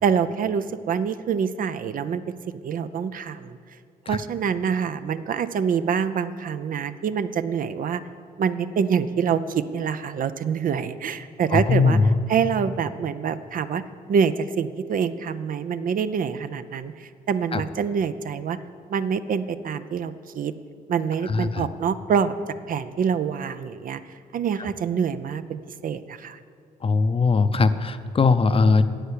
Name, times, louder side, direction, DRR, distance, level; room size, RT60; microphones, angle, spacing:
voice 1, 0.0-3.6 4.1-8.0 8.4-13.8 14.1-18.6 18.9-20.5 20.9-22.3 22.7-24.0 24.3-26.4, right 7 dB, 60° right, 12 dB, 0.5 m, -26 dB
voice 2, 26.8-28.8, left 4 dB, 35° left, 11 dB, 0.6 m, -19 dB
10.0 x 8.0 x 8.5 m, 2.3 s
cardioid pair, 85°, 16 cm